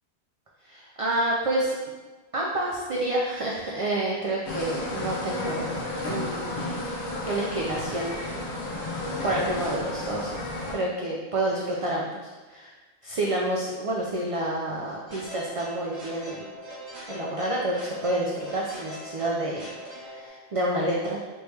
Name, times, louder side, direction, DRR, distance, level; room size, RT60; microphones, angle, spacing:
voice 1, 0.6-1.8 2.3-5.8 6.0-6.6 7.2-8.4 9.2-10.3 10.7-12.7 13.0-16.5 17.1-21.2, right 1 dB, 65° right, -3 dB, 0.3 m, -29 dB
sound 1, 4.4-10.7, left 2 dB, 55° left, 1.0 m, -32 dB
sound 2, 15.1-20.3, equal, 85° right, 1.3 m, -41 dB
3.4 x 3.0 x 3.2 m, 1.3 s
omnidirectional pair, 1.1 m